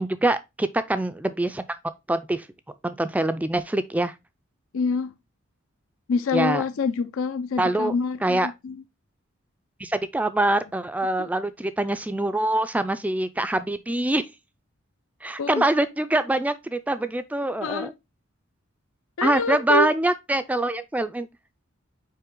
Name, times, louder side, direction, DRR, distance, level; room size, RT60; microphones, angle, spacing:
voice 1, 0.0-1.6 2.1-2.5 2.8-4.1 6.3-6.6 7.6-7.9 8.2-8.5 9.8-14.2 15.2-17.9 19.2-21.3, right 1 dB, 5° right, 0.3 m, -24 dB
voice 2, 4.7-5.1 6.1-8.8 11.2-11.3 15.4-15.6 17.6-17.9 19.2-19.9, left 4 dB, 75° left, 0.5 m, -26 dB
5.6 x 4.7 x 3.7 m
head